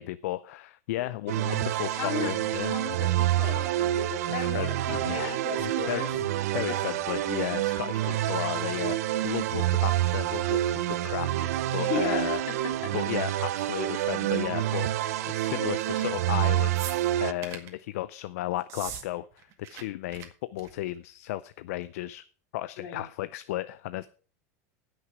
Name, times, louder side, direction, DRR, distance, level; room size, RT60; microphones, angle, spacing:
voice 1, 0.0-2.7 4.4-6.2 6.5-12.4 12.9-22.3 22.5-24.1, left 15 dB, 75° left, 15 dB, 0.5 m, -34 dB
voice 2, 1.0-1.4 2.0-2.3 2.6-6.1 6.7-7.0 11.8-12.9 15.5-16.1 22.8-23.1, left 7 dB, 55° left, 4 dB, 2.9 m, -37 dB
sound 1, 1.3-17.3, right 14 dB, 80° right, 0.7 m, -28 dB
sound 2, 16.7-17.7 18.6-19.1 19.3-19.8 20.1-20.3 20.6-20.9 21.8-21.9, right 9 dB, 40° right, 1.8 m, -40 dB
15.5 x 6.4 x 4.7 m, 0.39 s
supercardioid pair, 155°, 8 cm